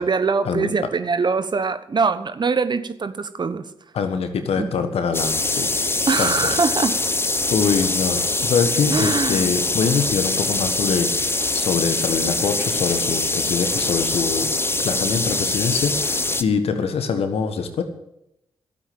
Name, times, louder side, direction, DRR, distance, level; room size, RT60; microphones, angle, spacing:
voice 1, 0.0-3.6 4.6-4.7 6.1-7.0 8.9-9.5, right 4 dB, 45° right, 1.1 m, -23 dB
voice 2, 3.9-5.7 6.2-6.5 7.5-14.5 14.8-17.8, left 5 dB, 70° left, 1.5 m, -24 dB
sound 1, 5.1-16.4, left 2 dB, 20° left, 1.0 m, -23 dB
12.0 x 8.2 x 8.7 m
supercardioid pair, 40°, 10 cm